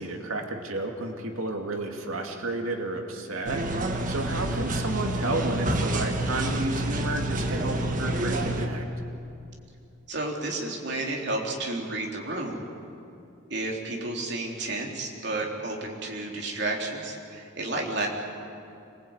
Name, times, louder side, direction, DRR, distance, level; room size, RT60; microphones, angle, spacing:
voice 1, 0.0-3.6 4.1-8.9, right 2 dB, 85° right, 3 dB, 2.6 m, -31 dB
sound 1, 3.4-8.7, right 1 dB, 40° right, 1.7 m, -28 dB
voice 2, 4.3-4.7 10.1-12.7 13.5-18.1, right 2 dB, 55° right, 0 dB, 3.7 m, -31 dB
26.0 x 20.0 x 9.0 m, 2.7 s
head